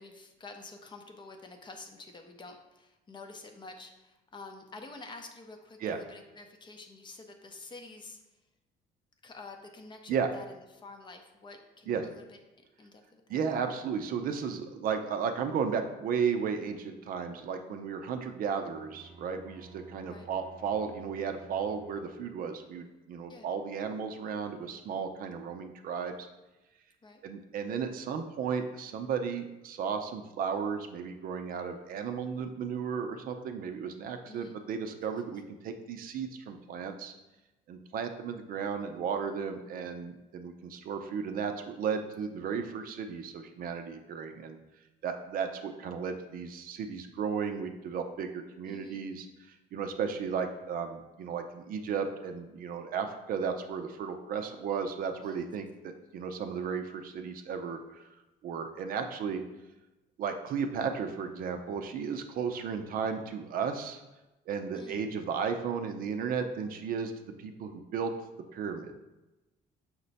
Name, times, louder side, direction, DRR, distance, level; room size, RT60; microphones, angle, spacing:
voice 1, 0.0-8.2 9.2-12.4 12.8-13.2 20.0-20.3 23.3-23.5 27.0-27.2 34.3-34.6 48.7-49.2 55.2-55.5 64.7-65.0, left 3 dB, 25° left, 4 dB, 0.6 m, -48 dB
voice 2, 13.3-26.3 27.2-37.1 37.7-44.6 45.0-49.3 49.7-58.1 58.4-59.4 60.2-64.0 64.5-67.1 67.4-68.1 68.5-68.9, right 6 dB, 60° right, 6 dB, 0.5 m, -34 dB
Bowed string instrument, 18.6-22.5, right 3 dB, 25° right, 0.8 m, -53 dB
5.7 x 2.1 x 4.0 m, 1.0 s
cardioid pair, 110°, 17 cm